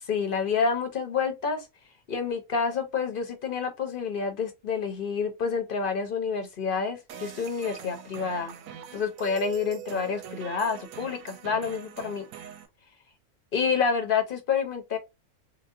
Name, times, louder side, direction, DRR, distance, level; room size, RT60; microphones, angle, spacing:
voice 1, 0.1-1.7 2.1-8.5 8.9-12.2 13.5-15.0, left 5 dB, 50° left, 0.8 m, -28 dB
sound 1, 7.1-12.7, right 9 dB, 85° right, 1.1 m, -43 dB
4.0 x 2.0 x 2.5 m
omnidirectional pair, 1.4 m